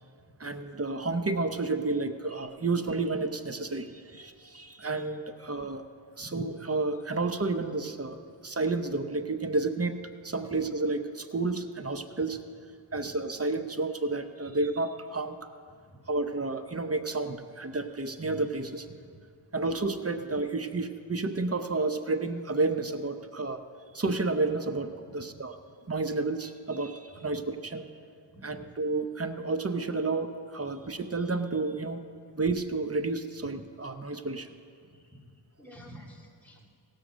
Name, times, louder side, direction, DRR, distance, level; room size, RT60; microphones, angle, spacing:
voice 1, 0.4-5.8 6.2-10.0 10.2-12.4 12.9-15.5 16.1-18.9 19.5-23.6 23.9-25.5 25.9-27.9 28.4-32.0 32.3-34.5, right 3 dB, 30° right, 8 dB, 0.8 m, -31 dB
voice 2, 28.3-28.6 34.9-35.2 35.6-36.7, equal, 5° left, -2 dB, 2.6 m, -49 dB
17.5 x 6.6 x 6.2 m, 2.2 s
cardioid pair, 50°, 46 cm